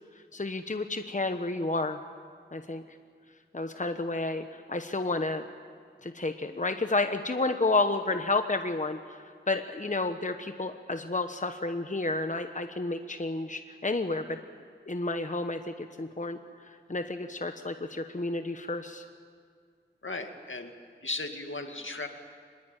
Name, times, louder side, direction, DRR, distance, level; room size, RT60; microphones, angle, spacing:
voice 1, 0.3-2.0 2.5-2.8 3.5-5.4 6.0-9.0 9.5-14.4 14.9-16.4 16.9-19.0, left 2 dB, 40° left, 7 dB, 1.1 m, -30 dB
voice 2, 20.0-20.7 21.0-22.1, left 2 dB, 80° left, 5 dB, 2.1 m, -36 dB
24.5 x 21.5 x 9.0 m, 2.1 s
wide cardioid pair, 55°, 20 cm